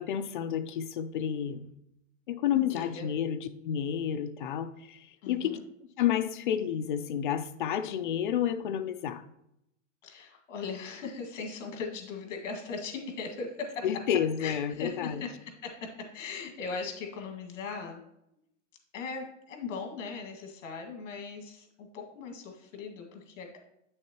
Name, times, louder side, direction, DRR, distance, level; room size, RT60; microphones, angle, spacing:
voice 1, 0.0-1.7 2.3-5.0 5.3-5.6 6.0-9.2 13.8-15.2, left 9 dB, 40° left, 10 dB, 0.4 m, -30 dB
voice 2, 2.5-3.1 5.2-5.6 10.0-13.9 14.4-18.0 18.9-23.6, left 4 dB, 65° left, 3 dB, 2.0 m, -39 dB
8.5 x 6.4 x 2.9 m, 0.81 s
supercardioid pair, 170°, 39 cm